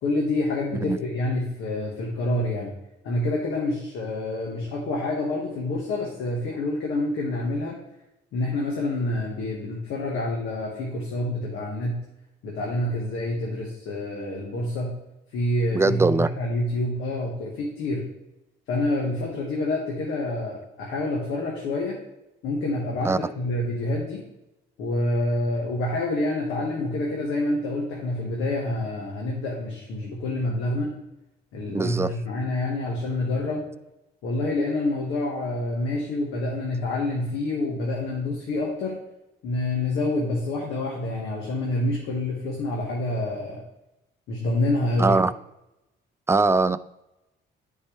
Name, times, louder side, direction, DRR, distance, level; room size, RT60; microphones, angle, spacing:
voice 1, 0.0-2.7 3.0-7.8 8.3-12.0 12.4-15.0 15.3-18.1 18.7-22.0 22.4-24.2 24.8-31.0 31.5-33.7 34.2-39.0 39.4-43.6 44.3-45.2, left 2 dB, 85° left, 1.5 m, -27 dB
voice 2, 15.7-16.3 23.0-23.2 31.7-32.1 45.0-45.3 46.3-46.8, right 3 dB, 15° right, 0.3 m, -21 dB
10.0 x 4.6 x 3.3 m
cardioid pair, 90°, 20 cm